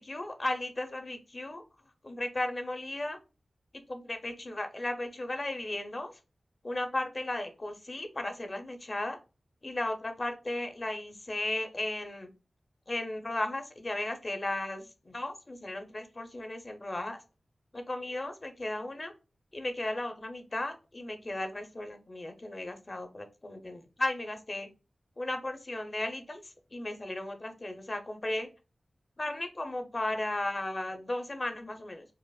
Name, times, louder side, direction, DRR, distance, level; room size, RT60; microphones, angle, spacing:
voice 1, 0.0-1.6 2.0-3.2 3.9-6.1 6.6-9.2 9.6-12.3 12.9-17.2 17.7-19.1 19.5-24.7 25.2-26.4 26.7-28.5 29.2-32.1, left 1 dB, 45° left, 6 dB, 0.7 m, -35 dB
4.8 x 2.0 x 2.3 m, 0.31 s
cardioid pair, 50°, 0 cm